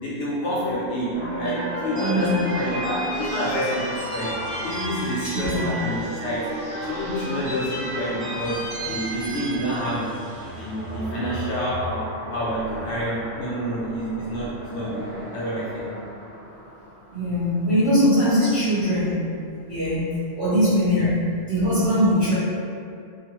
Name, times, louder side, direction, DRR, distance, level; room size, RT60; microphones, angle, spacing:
voice 1, 0.0-10.3 10.6-15.9 21.0-21.1, equal, 65° left, -7 dB, 0.8 m, -28 dB
sound 1, 1.1-17.3, right 1 dB, 50° right, 1.2 m, -33 dB
voice 2, 2.0-2.4 5.2-5.6 17.1-19.2 19.7-22.3, equal, 30° right, -14 dB, 0.9 m, -21 dB
2.9 x 2.0 x 2.9 m, 2.4 s
omnidirectional pair, 1.4 m